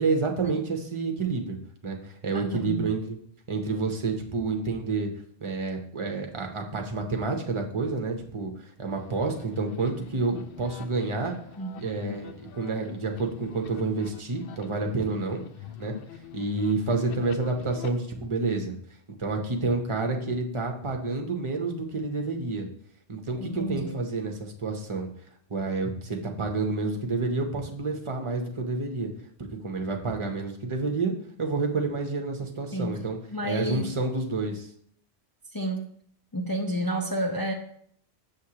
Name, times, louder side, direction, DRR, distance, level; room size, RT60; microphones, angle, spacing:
voice 1, 0.0-1.6 1.8-3.2 3.5-5.1 5.4-8.5 8.8-11.3 11.8-15.4 15.8-16.0 16.3-18.7 19.2-22.7 23.1-25.1 25.5-29.1 29.6-31.1 31.4-33.2 33.4-34.7, right 3 dB, 30° right, 2 dB, 0.8 m, -29 dB
voice 2, 2.3-2.9 11.6-11.8 23.4-24.0 32.7-33.0 33.3-33.9 35.5-35.9 36.3-37.5, equal, 35° left, 1 dB, 0.3 m, -30 dB
sound 1, 8.9-17.9, left 8 dB, 65° left, 0.7 m, -43 dB
6.6 x 6.3 x 2.9 m, 0.65 s
omnidirectional pair, 1.1 m